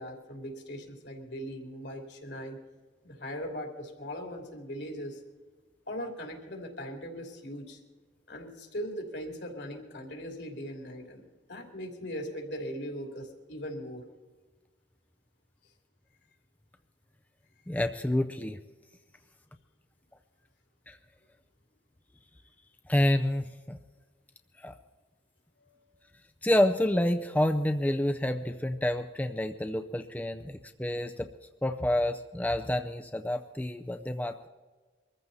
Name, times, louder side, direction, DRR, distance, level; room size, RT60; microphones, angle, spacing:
voice 1, 0.0-2.6 3.0-5.2 5.9-7.8 8.3-11.2 11.5-14.1, equal, 70° left, 3 dB, 3.2 m, -39 dB
voice 2, 17.7-18.6 20.9-21.0 22.9-23.8 24.6-24.7 26.4-31.3 31.6-34.5, left 1 dB, 10° left, 7 dB, 0.5 m, -28 dB
23.5 x 14.5 x 4.2 m, 1.3 s
head